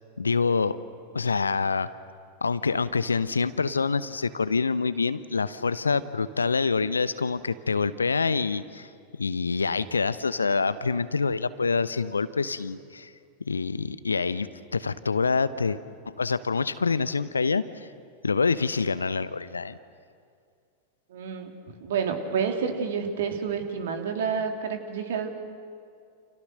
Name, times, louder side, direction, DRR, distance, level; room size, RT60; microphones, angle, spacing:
voice 1, 0.2-0.8 1.1-1.9 2.4-8.9 9.2-13.1 13.5-15.8 16.1-17.9 18.2-19.8, left 4 dB, 75° left, 15 dB, 0.9 m, -26 dB
voice 2, 21.1-25.3, right 6 dB, 60° right, 5 dB, 3.1 m, -29 dB
29.5 x 28.0 x 6.7 m, 2.3 s
figure-of-eight pair, 90°, 0 cm